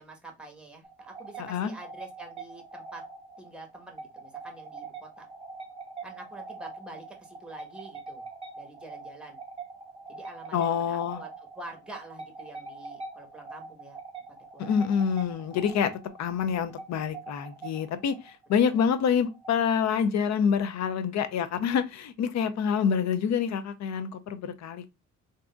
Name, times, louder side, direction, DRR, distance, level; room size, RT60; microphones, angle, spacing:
voice 1, 0.0-3.0 3.4-5.3 6.0-8.2 8.5-9.4 10.1-14.0 14.5-14.7 18.7-18.8, right 2 dB, 5° right, 1.2 m, -47 dB
sound 1, 0.8-20.2, right 4 dB, 20° right, 0.9 m, -44 dB
voice 2, 1.4-1.7 10.5-11.2 14.6-24.9, left 7 dB, 65° left, 0.6 m, -27 dB
3.7 x 2.7 x 2.2 m
cardioid pair, 90°, 30 cm